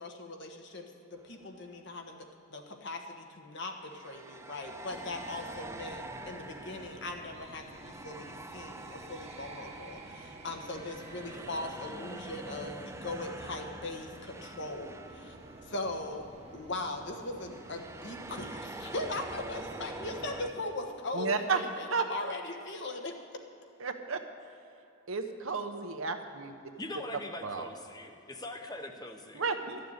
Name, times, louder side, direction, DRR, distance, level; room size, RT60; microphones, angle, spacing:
voice 1, 0.0-15.3 15.7-23.2, left 2 dB, 55° left, 3 dB, 1.2 m, -40 dB
sound 1, 1.1-1.4 3.8-16.2 16.4-16.7 17.4-20.5, right 2 dB, 15° right, 0.4 m, -46 dB
sound 2, 4.9-20.6, right 2 dB, 30° right, 1.0 m, -50 dB
voice 2, 21.1-21.6 21.9-22.0 23.8-24.2 25.1-26.5 27.4-27.7 29.3-29.8, right 5 dB, 70° right, 6 dB, 0.9 m, -32 dB
voice 3, 26.8-29.5, left 2 dB, 20° left, 5 dB, 0.9 m, -42 dB
12.5 x 6.9 x 9.5 m, 2.8 s
head